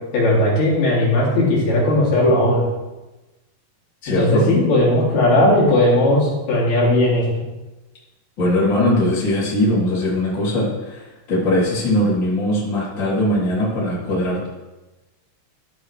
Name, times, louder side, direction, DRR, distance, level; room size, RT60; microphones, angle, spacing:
voice 1, 0.1-2.6 4.1-7.2, left 1 dB, 70° left, -6 dB, 4.9 m, -17 dB
voice 2, 4.0-4.5 8.4-14.5, left 1 dB, 30° left, -7 dB, 3.7 m, -20 dB
14.0 x 8.4 x 3.3 m, 1.1 s
omnidirectional pair, 4.7 m